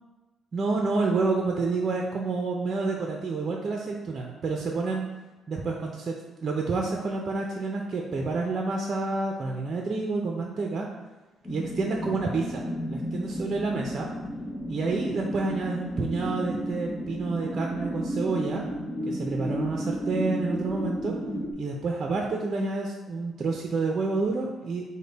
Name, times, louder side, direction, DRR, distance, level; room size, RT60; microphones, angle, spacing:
voice 1, 0.5-5.1 5.5-6.1 6.4-10.9 11.5-12.6 12.9-14.1 14.7-18.6 19.1-21.2 21.6-24.8, right 3 dB, 45° right, 0 dB, 0.5 m, -29 dB
sound 1, 11.4-21.5, equal, 25° left, 0.6 m, -33 dB
5.1 x 2.1 x 4.0 m, 1.2 s
cardioid pair, 90°, 0 cm